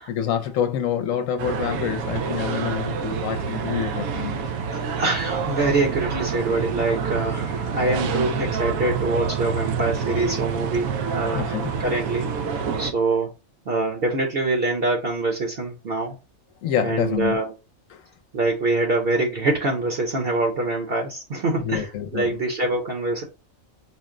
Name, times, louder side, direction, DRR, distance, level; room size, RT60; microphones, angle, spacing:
voice 1, 0.1-4.4 11.3-11.7 16.6-17.4 17.9-18.0 21.5-22.4, left 9 dB, 75° left, 1.0 m, -27 dB
sound 1, 1.4-12.9, right 6 dB, 90° right, 1.0 m, -27 dB
voice 2, 4.7-11.5 11.8-12.3 12.8-13.3 13.7-16.2 16.8-17.5 18.3-23.2, right 2 dB, 50° right, 0.9 m, -24 dB
4.4 x 2.1 x 3.6 m
omnidirectional pair, 1.4 m